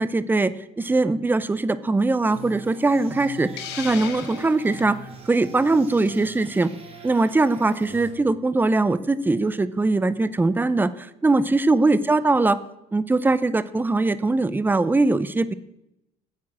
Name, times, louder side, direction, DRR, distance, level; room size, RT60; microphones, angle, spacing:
voice 1, 0.0-3.5 3.8-5.0 5.3-6.7 7.0-12.6 12.9-15.5, right 3 dB, 10° right, 16 dB, 0.6 m, -21 dB
sound 1, 2.2-8.1, right 2 dB, 35° right, 2.6 m, -43 dB
Hiss, 3.6-4.9, left 9 dB, 90° left, 1.3 m, -36 dB
8.9 x 8.3 x 6.2 m, 0.88 s
cardioid pair, 110°, 17 cm